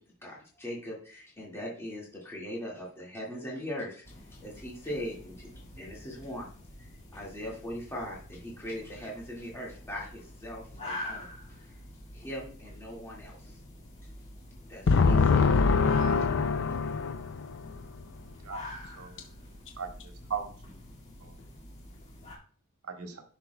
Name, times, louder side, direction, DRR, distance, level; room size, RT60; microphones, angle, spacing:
voice 1, 0.2-5.5 5.7-6.5 6.8-11.3 11.6-11.7 12.1-13.6 14.7-15.4, equal, 10° left, 1.9 m, -40 dB
sound 1, 4.0-22.4, left 1 dB, 30° left, 1.9 m, -46 dB
voice 2, 14.9-18.1, left 4 dB, 60° left, 0.4 m, -24 dB
voice 3, 19.0-19.3 19.8-20.8 21.2-21.4 21.6-21.7 22.9-23.2, right 6 dB, 80° right, 1.3 m, -38 dB
10.0 x 6.0 x 2.2 m
head